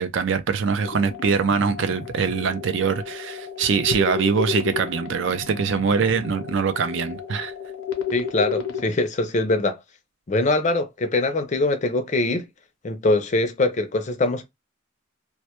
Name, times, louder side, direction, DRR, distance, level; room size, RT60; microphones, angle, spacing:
voice 1, 0.0-7.5, right 6 dB, 60° right, 0.4 m, -23 dB
sound 1, 0.8-8.8, left 7 dB, 85° left, 0.6 m, -32 dB
voice 2, 8.1-9.8 10.3-12.4 12.8-14.4, left 2 dB, 35° left, 0.4 m, -23 dB
2.2 x 2.0 x 2.8 m
head